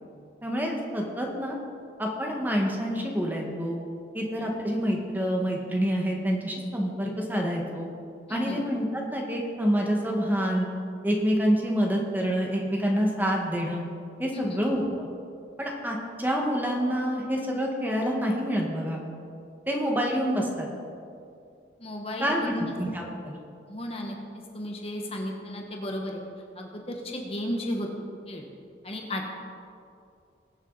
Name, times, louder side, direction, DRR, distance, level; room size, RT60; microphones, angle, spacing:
voice 1, 0.4-1.6 2.0-3.8 4.1-7.9 8.3-10.7 11.0-13.8 14.2-15.1 15.6-19.0 19.7-20.7 22.2-23.4, equal, 10° right, 0 dB, 1.5 m, -27 dB
voice 2, 8.3-8.6 14.3-14.6 21.8-22.7 23.7-24.2 24.5-26.2 26.5-27.9 28.3-28.4 28.8-29.3, left 1 dB, 35° left, 1 dB, 1.2 m, -34 dB
21.5 x 7.2 x 4.1 m, 2.4 s
head